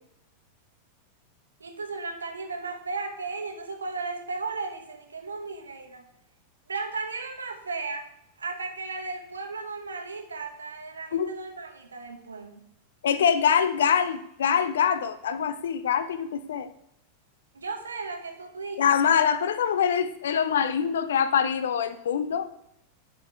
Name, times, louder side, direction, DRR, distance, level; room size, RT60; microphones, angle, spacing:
voice 1, 1.6-6.0 6.7-8.1 8.4-12.7 17.5-19.0, right 4 dB, 75° right, 5 dB, 1.0 m, -35 dB
voice 2, 13.0-16.7 18.8-22.5, left 7 dB, 60° left, 13 dB, 0.5 m, -24 dB
10.5 x 5.4 x 3.4 m, 0.77 s
figure-of-eight pair, 90°, 0 cm